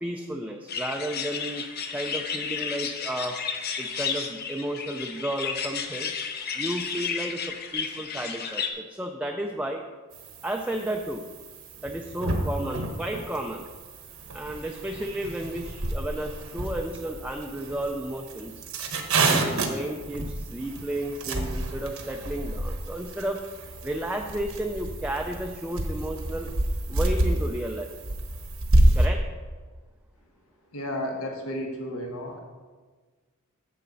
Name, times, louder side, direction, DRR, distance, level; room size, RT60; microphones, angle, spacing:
voice 1, 0.0-1.6 1.9-3.4 3.8-6.1 6.5-9.8 10.4-11.3 11.8-13.7 14.3-18.5 19.2-23.4 23.8-26.5 26.9-27.9 28.9-29.2, right 1 dB, 5° right, 2 dB, 0.4 m, -32 dB
sound 1, 0.7-8.7, left 6 dB, 45° left, 0.8 m, -32 dB
sound 2, 10.1-29.1, right 1 dB, 70° right, 1.1 m, -29 dB
voice 2, 30.7-32.4, left 1 dB, 75° left, 2 dB, 1.3 m, -32 dB
9.5 x 7.5 x 4.0 m, 1.4 s
head